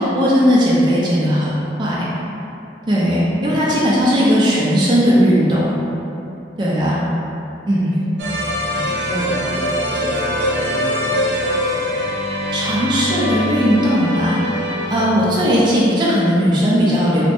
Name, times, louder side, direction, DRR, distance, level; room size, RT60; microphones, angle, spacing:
voice 1, 0.0-2.1 2.9-5.7 6.6-7.0 7.7-7.9 8.7-8.8 12.5-17.2, equal, 25° right, -7 dB, 0.4 m, -17 dB
voice 2, 3.5-3.8 8.0-8.1 8.4-11.9, equal, 30° left, -11 dB, 0.5 m, -30 dB
sound 1, 8.2-15.4, left 1 dB, 80° right, 0.5 m, -23 dB
3.3 x 2.0 x 2.9 m, 2.7 s
head